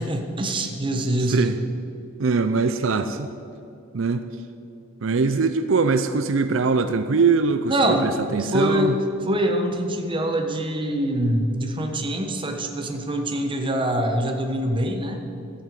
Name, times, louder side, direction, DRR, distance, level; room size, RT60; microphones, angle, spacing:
voice 1, 0.0-1.5 7.7-8.1 8.4-15.2, right 1 dB, 25° right, 4 dB, 1.2 m, -24 dB
voice 2, 2.2-3.3 3.9-4.3 5.0-9.0, right 4 dB, 75° right, 10 dB, 0.6 m, -22 dB
13.0 x 8.5 x 7.6 m, 2.6 s
head